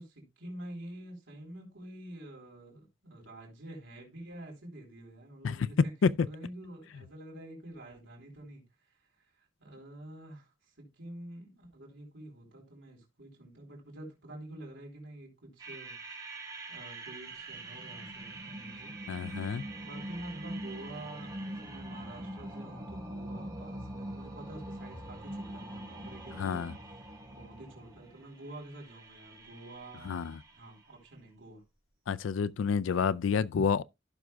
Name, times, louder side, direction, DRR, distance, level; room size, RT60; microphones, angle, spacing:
voice 1, 0.0-5.9 6.3-8.6 9.4-16.0 16.7-18.9 19.8-30.3 30.5-31.6, right 1 dB, 75° right, 4.0 m, -48 dB
sound 1, 15.6-30.9, right 1 dB, 20° right, 4.2 m, -43 dB
voice 2, 19.1-19.6 26.4-26.7 30.0-30.4 32.1-33.8, left 6 dB, 80° left, 0.4 m, -29 dB
15.5 x 6.2 x 2.3 m
head